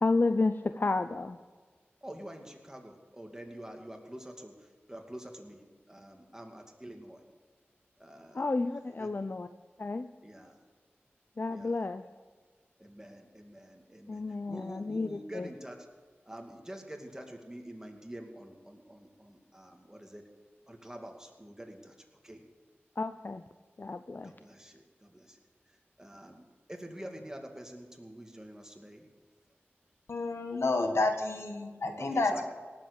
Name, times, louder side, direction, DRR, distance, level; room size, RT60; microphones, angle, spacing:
voice 1, 0.0-1.4 8.3-9.5 9.8-10.1 11.4-12.0 14.1-15.5 23.0-23.4 23.8-24.3, left 3 dB, 45° left, 10 dB, 0.5 m, -31 dB
voice 2, 2.0-4.5 4.9-7.2 8.0-8.4 9.0-9.1 10.2-10.6 11.5-11.8 12.8-14.2 14.5-15.8 16.3-20.2 20.7-21.9 22.2-22.4 24.2-25.4 26.0-26.4 26.7-29.0 32.0-32.4, right 1 dB, 15° right, 3 dB, 2.4 m, -46 dB
voice 3, 30.1-32.4, left 2 dB, 75° left, 5 dB, 1.6 m, -30 dB
18.0 x 7.7 x 6.9 m, 1.5 s
cardioid pair, 45°, 4 cm